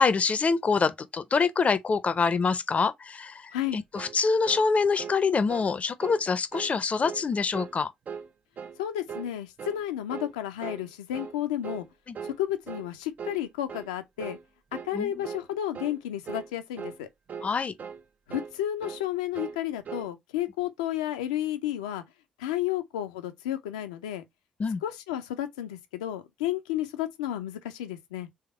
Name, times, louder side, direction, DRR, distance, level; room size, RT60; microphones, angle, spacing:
voice 1, 0.0-7.9 12.1-12.2 14.9-15.2 17.4-17.7 24.6-24.8, left 5 dB, 35° left, 0.6 m, -25 dB
sound 1, 4.0-4.2 4.5-4.7 5.0-5.2 5.5-5.7 6.0-6.2 6.5-6.7 7.0-7.3 7.5-7.8 8.1-8.3 8.6-8.8 9.1-9.3 9.6-9.8 10.1-10.3 10.6-10.8 11.1-11.4 11.6-11.9 12.1-12.4 12.7-12.9 13.2-13.4 13.7-13.9 14.2-14.4 14.7-14.9 15.2-15.5 15.7-16.0 16.3-16.5 16.8-17.0 17.3-17.5 17.8-18.0 18.3-18.6 18.8-19.0 19.3-19.6 19.8-20.1, right 6 dB, 45° right, 0.5 m, -39 dB
voice 2, 8.8-11.9 12.2-14.4 14.8-17.1 18.3-22.0 22.4-24.2 24.8-28.3, left 12 dB, 75° left, 0.5 m, -32 dB
3.5 x 3.5 x 4.2 m
figure-of-eight pair, 45°, 4 cm